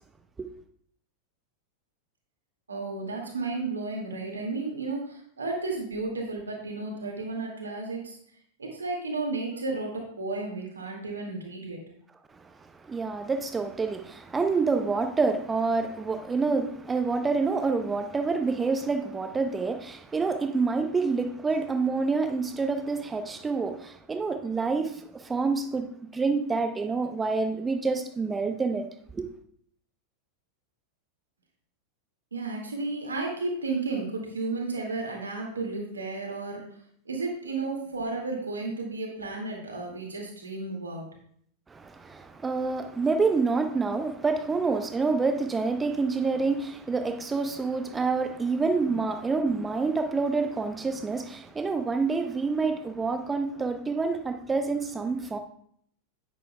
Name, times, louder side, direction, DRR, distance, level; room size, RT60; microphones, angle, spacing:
voice 1, 2.7-8.2 8.6-11.8 32.3-36.7 37.1-41.1, right 3 dB, 75° right, 2.2 m, -33 dB
voice 2, 12.9-28.8 29.1-29.3 41.7-55.4, right 4 dB, 15° right, 0.8 m, -27 dB
9.6 x 9.3 x 2.3 m
figure-of-eight pair, 90°, 0 cm